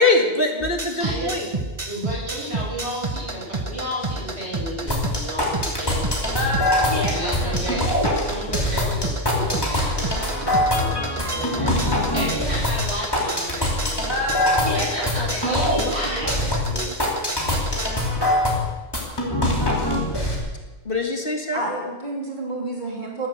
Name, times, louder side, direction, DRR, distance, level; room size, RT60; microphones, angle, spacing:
voice 1, 0.0-1.5 20.9-21.6, left 2 dB, 55° left, 3 dB, 2.4 m, -22 dB
sound 1, 0.6-17.9, right 3 dB, 30° right, 1.1 m, -31 dB
voice 2, 1.0-1.4 1.9-7.8 8.2-14.2 14.7-16.4, equal, 75° right, -5 dB, 7.5 m, -32 dB
sound 2, 4.9-20.4, left 1 dB, 20° left, 3.3 m, -23 dB
voice 3, 15.4-16.9 21.5-23.3, right 2 dB, 45° right, -1 dB, 3.2 m, -30 dB
13.5 x 12.5 x 8.1 m, 1.2 s
omnidirectional pair, 1.1 m